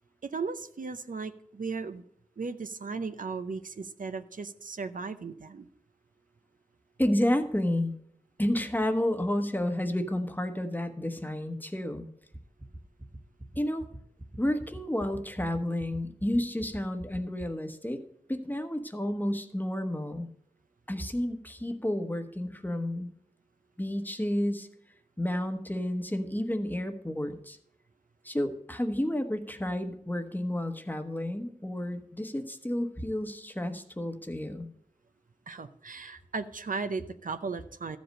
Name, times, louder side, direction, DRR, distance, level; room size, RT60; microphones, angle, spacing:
voice 1, 0.2-2.0 2.4-5.7 35.5-38.0, right 4 dB, 70° right, 10 dB, 0.6 m, -36 dB
voice 2, 7.0-7.9 8.4-12.1 13.6-13.9 14.4-18.0 18.3-20.3 20.9-23.1 23.8-24.7 25.2-27.6 28.2-34.7, left 1 dB, 15° left, 7 dB, 1.1 m, -31 dB
sound 1, 12.3-17.4, right 1 dB, 15° right, 1.1 m, -43 dB
13.5 x 5.3 x 6.3 m, 0.67 s
wide cardioid pair, 75°, 14 cm